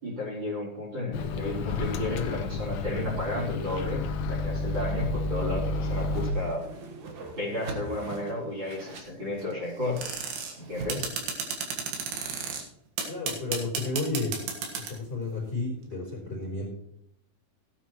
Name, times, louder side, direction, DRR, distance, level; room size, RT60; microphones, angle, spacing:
voice 1, 0.0-6.6 7.4-10.0 10.6-11.1, left 1 dB, 30° right, -8 dB, 4.5 m, -33 dB
Microwave oven, 1.1-6.3, left 3 dB, 70° left, 1.7 m, -30 dB
Whoosh swoosh swish, 5.9-10.9, right 3 dB, 60° right, 2.6 m, -43 dB
sound 1, 10.0-10.5 10.9-12.6 13.0-15.0, right 5 dB, 85° right, 3.6 m, -32 dB
voice 2, 13.1-14.5 14.9-16.7, left 2 dB, 30° left, -5 dB, 4.3 m, -32 dB
17.0 x 9.4 x 3.1 m, 0.72 s
omnidirectional pair, 4.2 m